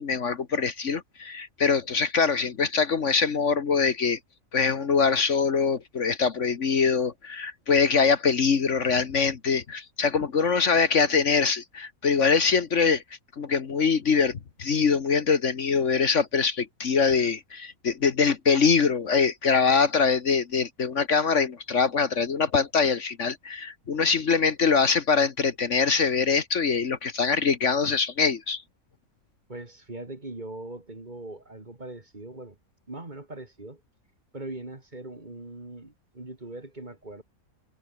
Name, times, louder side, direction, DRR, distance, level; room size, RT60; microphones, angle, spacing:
voice 1, 0.0-4.2 4.5-13.0 13.4-28.6, left 5 dB, 55° left, 1.6 m, -23 dB
voice 2, 29.5-32.6 32.9-33.8 34.3-37.2, right 2 dB, 30° right, 2.8 m, -40 dB
omnidirectional pair, 1.5 m